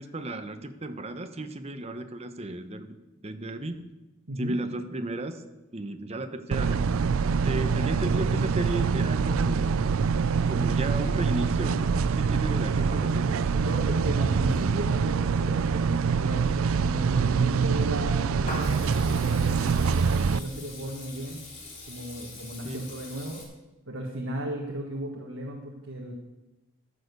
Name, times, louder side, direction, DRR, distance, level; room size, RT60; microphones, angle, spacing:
voice 1, 0.0-2.9 3.2-3.8 4.4-5.4 5.7-6.9 7.3-9.8 10.5-13.5 22.6-22.8, right 2 dB, 30° right, 8 dB, 0.9 m, -34 dB
sound 1, 6.5-20.4, right 5 dB, 90° right, 0.4 m, -25 dB
voice 2, 13.6-21.4 21.8-23.4 23.9-26.1, right 1 dB, 70° right, 0 dB, 1.6 m, -35 dB
Water tap faucet / Liquid, 17.7-23.4, left 2 dB, 35° left, 2.9 m, -43 dB
14.0 x 6.6 x 6.8 m, 1.0 s
head